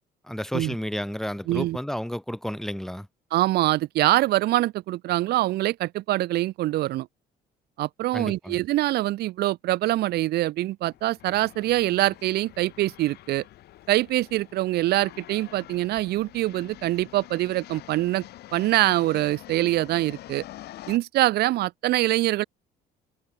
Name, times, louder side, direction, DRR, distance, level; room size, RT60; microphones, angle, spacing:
voice 1, 0.2-3.1 8.1-8.6, equal, ahead, 1.4 m, -31 dB
voice 2, 1.5-1.8 3.3-7.1 7.8-13.4 13.9-18.2 18.5-20.4 20.9-22.4, right 16 dB, 70° right, 0.8 m, -24 dB
sound 1, 10.8-21.0, left 15 dB, 75° left, 4.9 m, -46 dB
cardioid pair, 110°, 17 cm